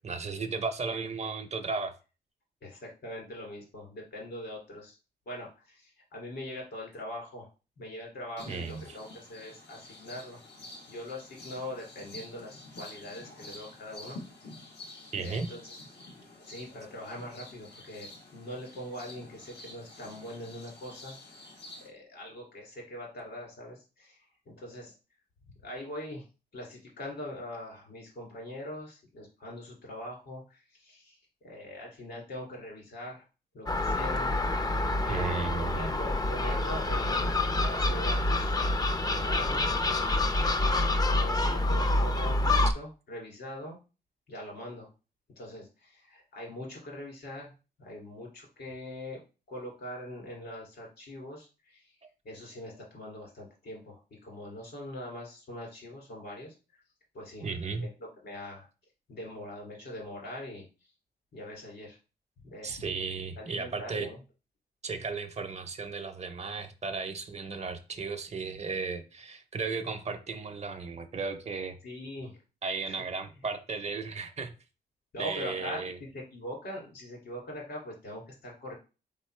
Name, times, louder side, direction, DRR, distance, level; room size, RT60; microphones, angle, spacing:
voice 1, 0.0-1.9 8.5-9.0 15.1-15.5 35.1-35.9 57.4-57.8 62.6-64.1 64.8-71.8 72.6-74.5 75.2-76.0, right 4 dB, 40° right, 0.6 m, -35 dB
voice 2, 2.6-5.0 5.3-7.5 7.8-10.4 10.9-14.2 15.2-15.8 16.5-21.1 21.8-24.2 24.5-24.9 25.6-26.2 26.5-33.2 33.5-34.4 35.0-38.6 39.0-39.7 41.0-43.8 44.3-44.9 45.4-47.5 47.8-49.2 49.5-51.9 52.2-56.5 57.1-57.4 57.8-57.9 58.2-58.7 59.1-60.6 61.3-62.0 62.4-62.8 63.4-64.2 71.8-72.4 72.9-73.0 75.1-78.7, left 1 dB, 75° left, 2.5 m, -42 dB
sound 1, 8.4-21.9, left 2 dB, 90° left, 1.3 m, -49 dB
Gull seagull, 33.7-42.7, left 2 dB, 20° left, 0.4 m, -27 dB
4.0 x 3.8 x 3.2 m
cardioid pair, 105°, 17 cm